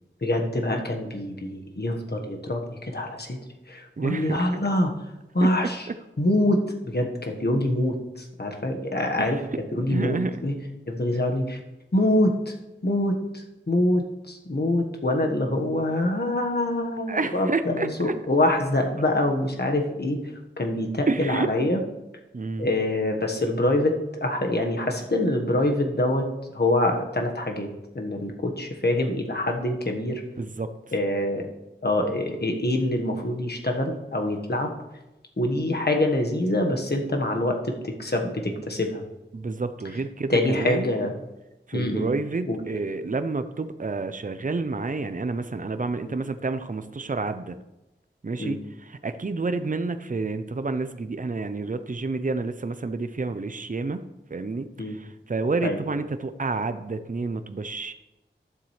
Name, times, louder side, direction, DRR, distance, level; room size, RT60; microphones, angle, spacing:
voice 1, 0.2-3.4 3.7-4.9 5.3-5.9 6.2-9.4 9.7-10.6 10.9-11.6 11.9-12.5 12.8-20.2 20.6-21.8 22.6-26.3 26.5-27.7 27.9-30.2 30.9-31.5 31.8-34.7 35.4-39.0 40.3-41.1 41.7-42.1 42.5-42.6 46.0-46.2 48.4-48.6 54.8-55.0 55.6-55.8, left 1 dB, 55° left, 2 dB, 1.4 m, -25 dB
voice 2, 4.0-4.5 5.4-5.7 9.2-9.4 9.9-10.4 17.1-18.1 21.1-21.5 22.3-22.7 30.4-30.7 36.7-36.8 39.3-40.9 41.7-47.6 48.2-54.0 54.3-57.9, right 3 dB, 40° right, 10 dB, 0.6 m, -29 dB
12.0 x 7.4 x 3.3 m, 0.98 s
wide cardioid pair, 45°, 20 cm